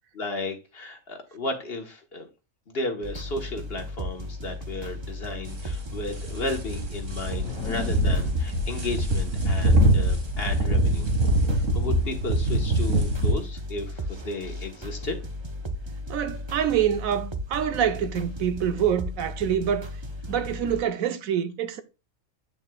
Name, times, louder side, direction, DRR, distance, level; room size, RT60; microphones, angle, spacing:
voice 1, 0.1-2.3 2.7-11.1 11.7-15.2, left 2 dB, 45° left, 1.4 m, -34 dB
sound 1, 3.0-20.8, equal, 25° right, 0.7 m, -36 dB
sound 2, 5.5-13.3, right 1 dB, 65° right, 2.0 m, -24 dB
sound 3, 6.7-10.4, left 6 dB, 85° left, 1.4 m, -39 dB
voice 2, 16.1-19.9 20.3-21.8, right 9 dB, 85° right, 1.2 m, -26 dB
8.9 x 7.1 x 2.3 m
omnidirectional pair, 1.4 m